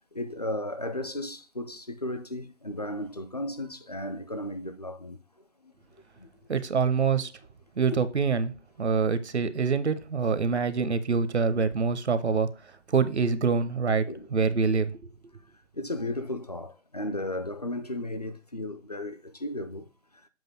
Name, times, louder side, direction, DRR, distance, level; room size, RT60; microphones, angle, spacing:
voice 1, 0.1-5.2 5.6-5.7 6.2-6.3 14.1-14.3 15.7-19.9, left 1 dB, 35° left, 0.4 m, -35 dB
voice 2, 6.5-7.3 7.8-8.5 8.8-12.5 12.9-14.0 14.3-14.9, right 5 dB, 65° right, 0.7 m, -25 dB
7.5 x 2.6 x 5.6 m
figure-of-eight pair, 145°, 37 cm